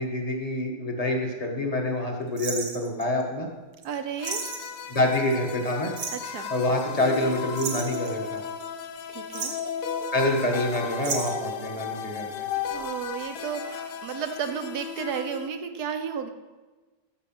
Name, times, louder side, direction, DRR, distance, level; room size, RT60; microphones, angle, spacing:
voice 1, 0.0-3.5 4.9-5.9 6.5-8.4 10.1-12.5, left 1 dB, 20° left, 1 dB, 1.5 m, -27 dB
sound 1, 2.4-3.2 3.8-3.9 4.2-4.8 5.9-6.3 7.6-8.6 9.2-9.7 11.0-11.5 12.6-12.9 13.2-13.3, right 5 dB, 85° right, 2.4 m, -33 dB
voice 2, 3.8-4.4 6.1-6.5 9.1-9.5 12.7-16.3, right 7 dB, 60° right, 7 dB, 1.3 m, -33 dB
sound 2, 4.2-15.5, left 7 dB, 65° left, 1.2 m, -35 dB
14.0 x 6.7 x 6.1 m, 1.3 s
omnidirectional pair, 2.1 m